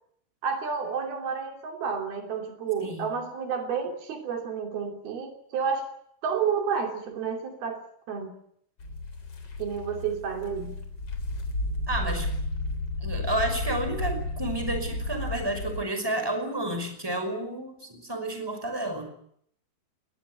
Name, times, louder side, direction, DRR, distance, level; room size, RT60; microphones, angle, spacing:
voice 1, 0.4-5.9 6.2-8.3 9.6-10.7, right 6 dB, 75° right, 4 dB, 4.8 m, -30 dB
voice 2, 2.8-3.1 11.9-12.3 13.0-19.1, right 1 dB, 5° right, 7 dB, 5.4 m, -31 dB
sound 1, 8.8-15.8, left 2 dB, 40° left, 4.4 m, -32 dB
21.0 x 20.0 x 9.6 m, 0.67 s
omnidirectional pair, 4.4 m